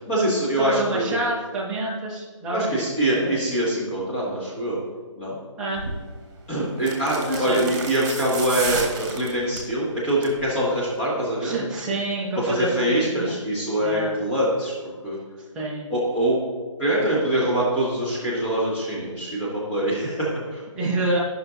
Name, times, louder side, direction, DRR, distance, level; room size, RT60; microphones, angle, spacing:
voice 1, 0.1-1.2 2.5-4.8 5.2-5.4 6.5-11.5 12.4-14.7 15.0-15.2 15.9-16.4 16.8-20.6, right 1 dB, 20° left, -9 dB, 2.0 m, -24 dB
voice 2, 0.6-2.7 3.0-3.4 5.6-5.8 7.2-7.6 11.4-13.4 13.8-14.2 15.5-15.9 20.7-21.2, right 2 dB, 5° right, -5 dB, 0.5 m, -27 dB
sound 1, 5.7-6.0 6.8-9.7 10.1-10.4 10.7-10.8, right 3 dB, 40° right, 1.4 m, -32 dB
13.0 x 5.7 x 2.7 m, 1.4 s
hypercardioid pair, 165°, 16 cm